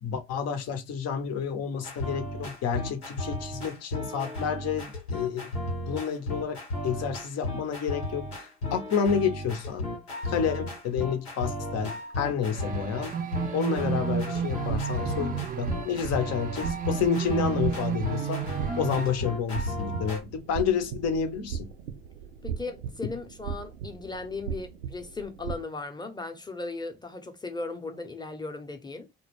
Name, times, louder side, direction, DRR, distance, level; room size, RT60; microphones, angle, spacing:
voice 1, 0.0-5.5 5.9-9.9 10.2-13.2 13.5-18.5 18.8-21.7 23.0-23.1, left 7 dB, 55° left, 0.7 m, -30 dB
sound 1, 1.7-20.2, left 1 dB, 90° left, 0.9 m, -35 dB
sound 2, 12.5-19.1, right 7 dB, 30° right, 0.5 m, -32 dB
sound 3, 14.4-25.6, right 7 dB, 80° right, 0.5 m, -38 dB
voice 2, 22.4-29.1, left 3 dB, 15° left, 0.7 m, -37 dB
2.2 x 2.1 x 3.1 m
hypercardioid pair, 50°, 31 cm